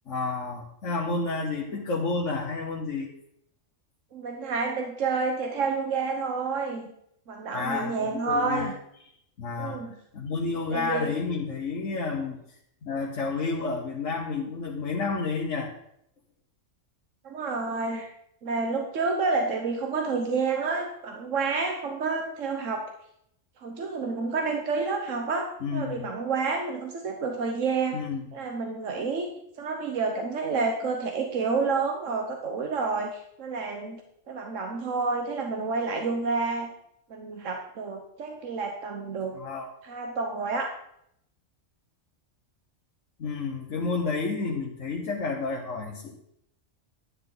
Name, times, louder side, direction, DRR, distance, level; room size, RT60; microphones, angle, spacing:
voice 1, 0.1-3.1 7.5-8.7 9.4-9.8 10.1-12.4 12.8-15.7 25.6-26.1 27.9-28.2 39.3-39.7 43.2-46.2, left 4 dB, 80° left, -3 dB, 1.6 m, -30 dB
voice 2, 4.1-6.9 7.3-8.7 9.6-9.9 10.7-11.1 17.2-18.1 18.4-22.8 23.6-28.0 28.3-29.3 29.6-34.0 34.3-36.7 37.1-39.3 39.8-40.7, right 4 dB, 85° right, 2 dB, 1.5 m, -29 dB
11.0 x 10.0 x 3.9 m, 0.73 s
omnidirectional pair, 1.3 m